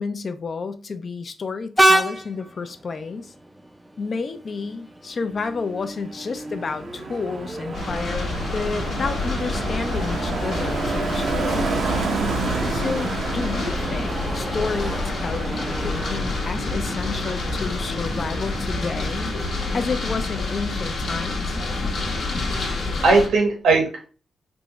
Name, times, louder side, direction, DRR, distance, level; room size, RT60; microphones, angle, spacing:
voice 1, 0.0-3.3 4.0-11.9 12.7-19.4 19.7-21.6, left 4 dB, 50° left, 0.4 m, -30 dB
Train, 1.8-19.0, right 1 dB, 10° right, 0.4 m, -30 dB
Car passing by, 5.8-20.6 20.9-21.2, right 4 dB, 70° right, 0.6 m, -31 dB
sound 1, 7.7-23.3, left 2 dB, 65° left, 0.9 m, -28 dB
voice 2, 21.7-22.6 23.0-24.1, right 3 dB, 85° right, 1.3 m, -21 dB
3.5 x 2.0 x 3.8 m
cardioid pair, 80°, 0 cm